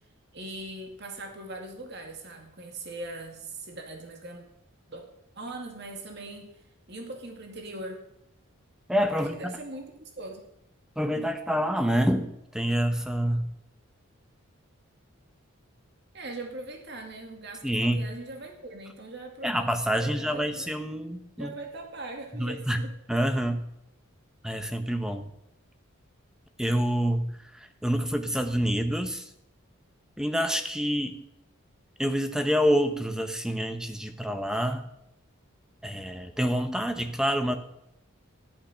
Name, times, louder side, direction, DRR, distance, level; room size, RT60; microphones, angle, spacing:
voice 1, 0.3-4.4 4.9-5.0 5.4-6.6 6.9-8.0 9.1-10.5 16.1-19.7 20.0-20.8 21.4-22.9, right 2 dB, 50° right, 2 dB, 2.3 m, -40 dB
voice 2, 8.9-9.6 11.0-13.5 17.6-18.1 19.4-21.5 22.3-22.8 23.1-23.6 24.4-25.3 26.6-29.3 30.2-31.2 32.0-34.8 35.8-37.6, equal, 5° right, 7 dB, 1.0 m, -27 dB
13.5 x 11.0 x 5.8 m, 0.79 s
head